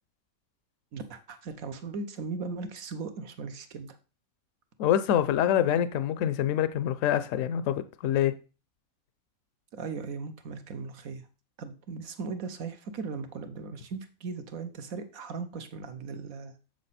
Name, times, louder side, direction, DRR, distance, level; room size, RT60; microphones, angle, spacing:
voice 1, 0.9-4.0 9.7-11.2 11.6-16.5, right 4 dB, 70° right, 1.4 m, -38 dB
voice 2, 4.8-8.3, left 10 dB, 70° left, 0.9 m, -25 dB
7.3 x 6.6 x 4.1 m
omnidirectional pair, 1.5 m